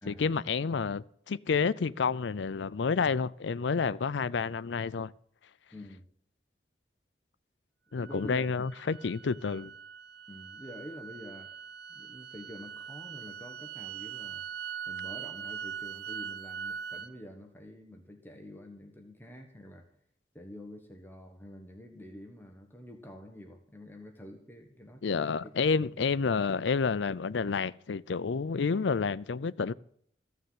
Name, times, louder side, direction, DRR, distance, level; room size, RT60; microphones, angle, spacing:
voice 1, 0.1-5.1 7.9-9.7 25.0-29.7, left 5 dB, 85° left, 0.5 m, -29 dB
voice 2, 5.7-6.0 7.9-8.4 10.3-11.5 11.9-14.4 14.9-19.9 20.3-25.5 25.8-26.1, equal, 10° left, 1.3 m, -47 dB
sound 1, 8.0-17.1, right 7 dB, 60° right, 0.7 m, -42 dB
15.0 x 6.7 x 9.5 m
head